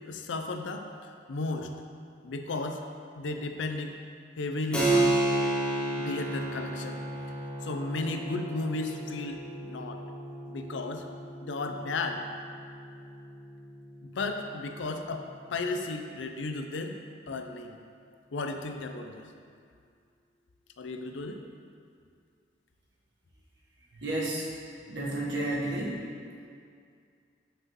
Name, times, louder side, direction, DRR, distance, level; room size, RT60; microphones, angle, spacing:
voice 1, 0.0-1.7 2.2-2.8 3.1-4.0 4.4-5.2 6.0-7.0 7.6-10.0 10.5-11.0 11.4-12.2 14.0-17.0 17.3-17.8 18.3-19.3 20.8-21.4, left 3 dB, 85° left, 5 dB, 0.5 m, -34 dB
Keyboard (musical), 4.7-14.9, right 2 dB, 5° left, 0.7 m, -32 dB
voice 2, 23.8-24.6 24.9-26.1, right 1 dB, 75° right, -5 dB, 1.2 m, -32 dB
5.9 x 5.3 x 3.0 m, 2.3 s
head